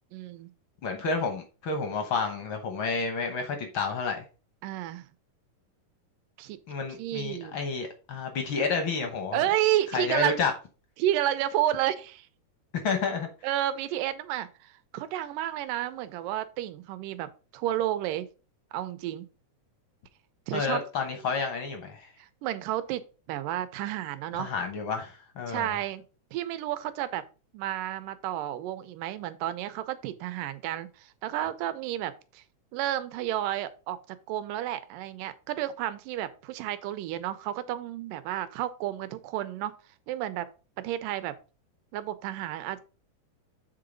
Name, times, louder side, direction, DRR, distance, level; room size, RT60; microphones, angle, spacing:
voice 1, 0.1-0.5 4.6-5.0 6.4-6.6 7.0-7.6 9.3-10.4 11.0-12.3 13.4-18.3 18.7-19.3 20.5-20.8 22.2-24.5 25.5-26.0 26.3-27.2 27.5-32.4 32.7-39.7 40.1-40.5 40.8-41.4 41.9-42.8, right 13 dB, 85° right, 2.3 m, -31 dB
voice 2, 0.8-4.2 6.7-9.4 9.9-10.5 12.8-13.3 20.5-22.1 24.3-25.8, left 4 dB, 70° left, 1.2 m, -30 dB
7.4 x 3.9 x 5.1 m
omnidirectional pair, 3.8 m